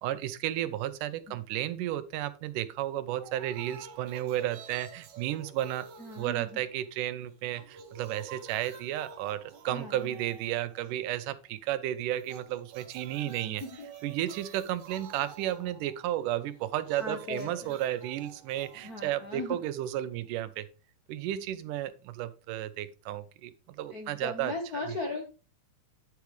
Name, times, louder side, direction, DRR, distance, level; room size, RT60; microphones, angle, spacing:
voice 1, 0.0-5.9 6.2-13.6 14.0-20.7 21.1-24.5 24.9-25.0, right 13 dB, 90° right, 14 dB, 2.3 m, -33 dB
sound 1, 3.1-7.1 7.4-11.2 12.1-20.1, right 6 dB, 70° right, 2.8 m, -50 dB
voice 2, 6.0-6.6 9.7-10.1 13.2-13.3 13.6-13.9 17.0-17.8 18.8-19.6 23.9-25.2, left 2 dB, 65° left, 3 dB, 0.9 m, -38 dB
9.6 x 8.4 x 3.1 m, 0.34 s
omnidirectional pair, 3.6 m